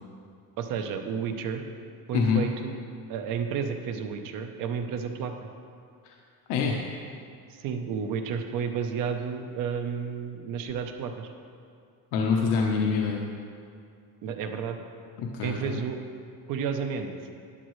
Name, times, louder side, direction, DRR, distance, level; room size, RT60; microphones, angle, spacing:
voice 1, 0.6-1.6 2.1-2.7 3.1-5.5 7.5-11.3 14.2-14.8 15.4-16.0 16.5-17.1, right 6 dB, 55° right, 6 dB, 0.8 m, -31 dB
voice 2, 2.1-2.4 6.0-6.1 6.5-6.8 12.1-13.2 15.2-15.8, left 5 dB, 80° left, -1 dB, 1.0 m, -25 dB
12.0 x 10.5 x 3.2 m, 2.3 s
cardioid pair, 180°, 39 cm